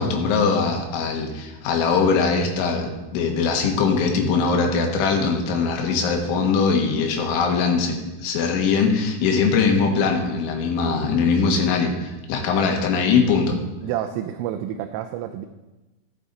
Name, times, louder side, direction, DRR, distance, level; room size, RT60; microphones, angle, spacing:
voice 1, 0.0-13.6, left 5 dB, 75° left, 3 dB, 3.5 m, -21 dB
voice 2, 13.8-15.5, right 11 dB, 85° right, 6 dB, 3.1 m, -29 dB
12.5 x 8.3 x 3.9 m, 1.1 s
omnidirectional pair, 5.7 m